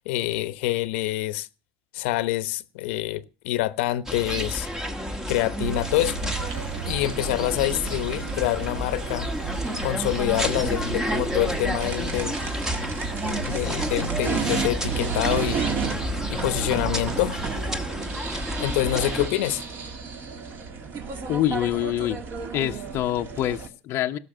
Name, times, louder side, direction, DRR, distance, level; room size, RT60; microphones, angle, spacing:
voice 1, 0.0-1.5 1.9-4.7 5.3-6.2 6.9-9.3 9.8-12.4 13.5-16.0 16.3-17.5 18.6-19.6, left 15 dB, 75° left, 1.0 m, -26 dB
sound 1, 4.1-19.3, equal, 10° right, 1.2 m, -30 dB
sound 2, 5.6-17.9, right 7 dB, 65° right, 4.0 m, -36 dB
sound 3, 6.2-23.7, right 5 dB, 35° right, 2.3 m, -34 dB
voice 2, 21.3-22.2 22.5-24.2, left 12 dB, 40° left, 0.9 m, -26 dB
17.5 x 6.6 x 6.6 m
cardioid pair, 155°, 6 cm